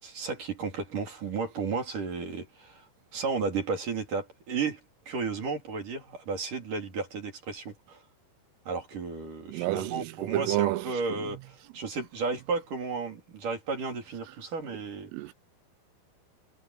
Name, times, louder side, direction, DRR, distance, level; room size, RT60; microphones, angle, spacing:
voice 1, 0.0-2.9 3.1-4.8 5.1-8.0 8.7-15.1, right 4 dB, 45° right, 4.5 m, -33 dB
voice 2, 9.5-10.9 15.1-15.3, right 18 dB, 85° right, 3.3 m, -29 dB
omnidirectional pair, 5.8 m